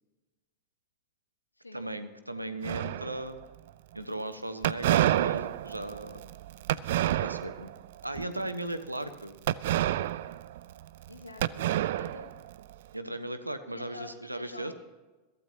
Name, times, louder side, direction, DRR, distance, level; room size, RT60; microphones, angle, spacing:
voice 1, 1.7-3.4 3.9-6.2 7.2-7.7 8.0-9.4 12.9-14.7, right 1 dB, 85° right, 10 dB, 1.1 m, -37 dB
sound 1, 2.6-3.4 4.6-7.7 8.1-8.5 9.5-11.1 11.4-12.7, right 13 dB, 55° right, 0.4 m, -29 dB
voice 2, 11.1-11.6 11.9-12.3 13.7-14.7, left 3 dB, 80° left, 4 dB, 1.5 m, -46 dB
22.0 x 15.5 x 2.9 m, 1.2 s
figure-of-eight pair, 90°, 0 cm